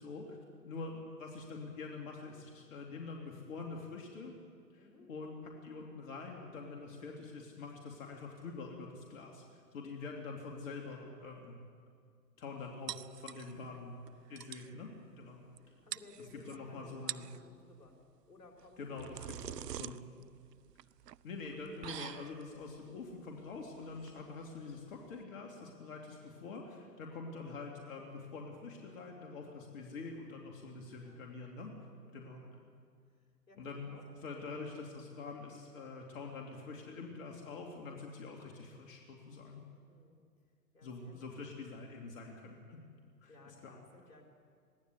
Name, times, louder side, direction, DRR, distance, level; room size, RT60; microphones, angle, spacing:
voice 1, 0.0-4.3 4.7-11.6 12.4-13.9 14.3-15.4 16.3-17.2 18.8-20.0 21.2-31.7 32.1-32.4 33.6-39.6 40.8-42.8 43.2-43.7, left 4 dB, 55° left, 1 dB, 2.9 m, -46 dB
voice 2, 4.8-5.1 13.6-13.8 14.6-14.8 15.8-20.2 31.0-31.2 32.0-32.7 33.5-34.3 39.9-40.2 40.7-41.5 43.3-44.2, left 3 dB, 80° left, 1 dB, 4.6 m, -59 dB
sound 1, 12.9-13.8 14.1-14.2 14.4-14.7 15.6-15.7 15.9-16.6 16.9-17.4 18.6-25.2, right 11 dB, 75° right, 0.7 m, -46 dB
22.0 x 15.5 x 8.1 m, 2.1 s
hypercardioid pair, 125°, 48 cm